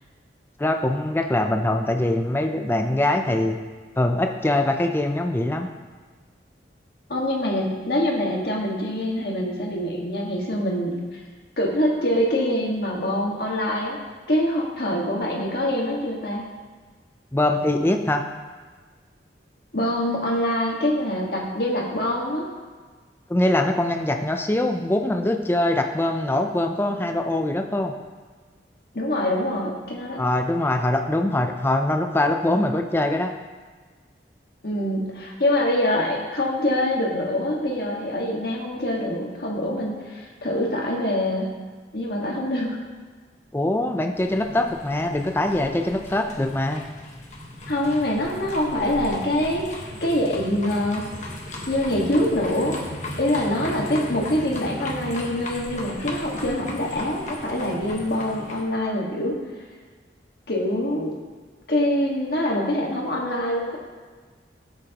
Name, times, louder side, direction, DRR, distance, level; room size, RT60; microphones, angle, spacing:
voice 1, 0.6-3.6 4.0-5.7 17.3-18.2 23.3-27.9 30.2-33.3 43.5-46.8, left 1 dB, 15° left, 4 dB, 0.5 m, -23 dB
voice 2, 7.1-11.2 11.6-14.0 14.3-16.4 19.7-22.4 28.9-30.2 34.6-41.5 41.9-42.8 47.7-51.0 51.7-52.8 53.2-59.3 60.5-61.1 61.7-63.8, left 1 dB, 60° left, -2 dB, 1.7 m, -24 dB
sound 1, 44.1-58.6, left 1 dB, 45° left, 1.3 m, -36 dB
13.5 x 8.1 x 3.0 m, 1.5 s
head